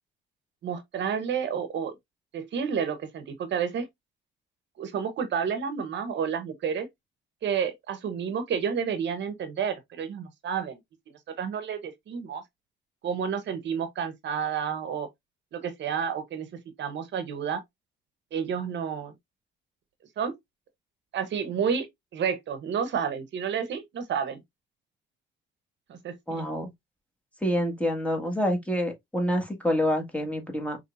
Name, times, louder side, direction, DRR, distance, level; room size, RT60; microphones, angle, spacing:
voice 1, 0.6-1.9 2.3-3.9 4.8-6.9 7.4-10.8 11.4-12.4 13.0-15.1 15.5-16.5 16.8-17.6 18.3-19.1 20.2-20.3 21.1-21.9 22.1-24.4 25.9-26.5, right 7 dB, 65° right, 0.9 m, -30 dB
voice 2, 26.3-26.7 27.4-30.8, equal, 5° left, 1.5 m, -27 dB
5.4 x 3.2 x 2.4 m
cardioid pair, 90°, 20 cm